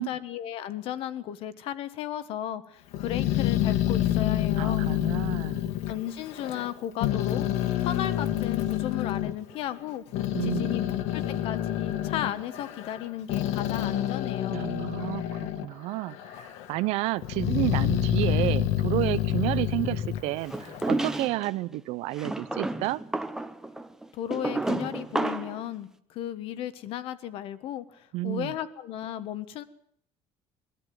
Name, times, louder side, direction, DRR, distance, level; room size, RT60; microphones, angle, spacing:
voice 1, 0.0-4.9 5.9-7.4 7.8-10.0 10.4-10.9 11.1-14.6 24.1-29.6, left 11 dB, 55° left, 13 dB, 1.3 m, -35 dB
Growling, 2.9-6.7 7.0-9.3 9.9-15.7 16.1-16.8 17.2-21.0, left 12 dB, 80° left, 1.6 m, -28 dB
voice 2, 4.6-5.6 10.3-10.8 14.5-23.0 28.1-28.6, right 17 dB, 70° right, 18 dB, 0.7 m, -31 dB
sound 1, 20.5-21.5 22.2-25.6, right 2 dB, 5° right, 0.8 m, -31 dB
21.0 x 13.5 x 9.3 m, 0.69 s
cardioid pair, 180°, 11 cm